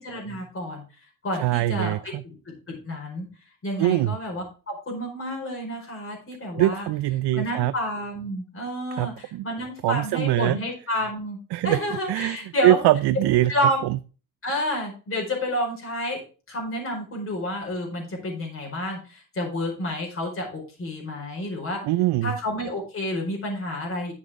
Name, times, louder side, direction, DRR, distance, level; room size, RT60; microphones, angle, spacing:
voice 1, 0.0-0.8 1.2-2.4 2.7-3.3 3.6-6.9 7.3-11.4 11.6-12.8 13.5-13.8 14.4-16.2 16.5-21.8 22.2-24.1, equal, 30° left, -1 dB, 4.6 m, -29 dB
voice 2, 1.4-2.2 3.8-4.2 6.6-7.7 9.0-9.4 9.8-10.6 11.5-11.8 12.1-12.4 12.6-13.5 13.8-14.0 21.8-22.3, right 15 dB, 70° right, 12 dB, 0.6 m, -22 dB
10.5 x 7.2 x 3.6 m, 0.35 s
cardioid pair, 130°, 41 cm